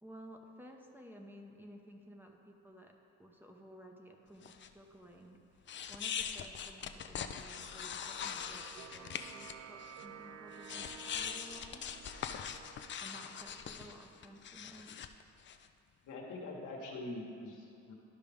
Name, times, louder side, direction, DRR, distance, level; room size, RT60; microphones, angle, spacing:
voice 1, 0.0-2.9 3.2-12.2 13.0-15.0, equal, 5° right, 1 dB, 0.7 m, -55 dB
sound 1, 4.4-4.7 5.7-9.5 9.8-10.0 10.5-15.7, left 8 dB, 40° left, 0.4 m, -42 dB
sound 2, 7.5-14.4, right 8 dB, 60° right, 0.5 m, -54 dB
voice 2, 16.0-17.9, left 2 dB, 80° left, -1 dB, 1.4 m, -44 dB
12.5 x 4.8 x 3.5 m, 2.5 s
cardioid pair, 90°, 30 cm